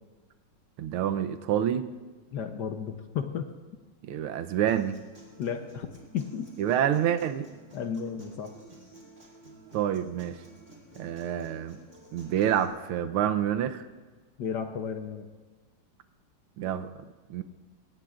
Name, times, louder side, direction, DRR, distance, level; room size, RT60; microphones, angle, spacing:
voice 1, 0.8-1.9 4.0-5.0 6.6-7.5 9.7-10.4 11.0-11.8 12.1-13.9 16.6-16.9 17.3-17.4, right 10 dB, 80° right, 9 dB, 1.6 m, -27 dB
voice 2, 2.3-3.5 5.4-5.9 6.1-6.5 7.7-8.6 14.4-15.3, left 7 dB, 65° left, 7 dB, 1.2 m, -33 dB
Human voice / Acoustic guitar, 4.7-12.7, right 2 dB, 35° right, 2.7 m, -53 dB
23.5 x 18.5 x 2.5 m, 1.4 s
omnidirectional pair, 2.4 m